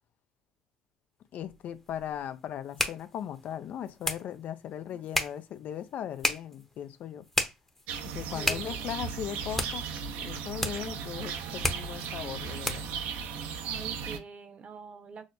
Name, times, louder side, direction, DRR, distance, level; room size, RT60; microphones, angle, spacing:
voice 1, 1.3-7.3 8.0-9.9 10.2-12.8, left 10 dB, 60° left, 0.5 m, -38 dB
sound 1, 1.4-13.0, left 1 dB, 10° left, 0.8 m, -36 dB
sound 2, 7.9-14.2, right 6 dB, 70° right, 0.6 m, -36 dB
voice 2, 8.3-8.6 13.6-15.3, right 5 dB, 45° right, 0.8 m, -44 dB
6.2 x 2.1 x 2.6 m
hypercardioid pair, 60°, 3 cm